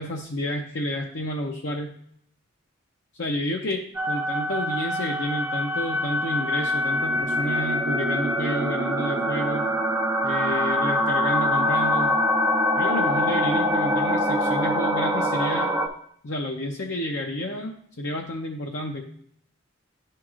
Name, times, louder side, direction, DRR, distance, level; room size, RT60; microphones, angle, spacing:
voice 1, 0.0-1.9 3.2-9.7 10.2-12.2 12.8-15.7 16.2-19.1, left 1 dB, 60° left, 0 dB, 0.6 m, -30 dB
sound 1, 3.9-15.9, equal, 10° right, 0.6 m, -24 dB
11.0 x 4.6 x 2.4 m, 0.66 s
head